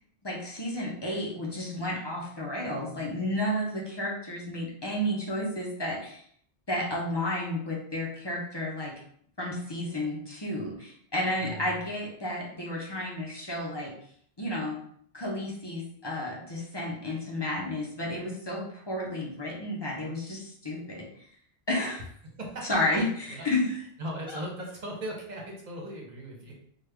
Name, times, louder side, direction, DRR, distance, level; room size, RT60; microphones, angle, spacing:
voice 1, 0.2-6.2 6.7-8.9 9.4-13.9 14.4-14.8 15.1-21.1 21.7-22.0 22.7-23.0 23.4-23.8, left 1 dB, 30° left, -3 dB, 0.7 m, -32 dB
voice 2, 11.4-11.8 22.4-22.7 23.3-23.5 24.0-26.6, equal, 45° right, -1 dB, 0.9 m, -38 dB
3.2 x 2.3 x 3.3 m, 0.62 s
omnidirectional pair, 1.1 m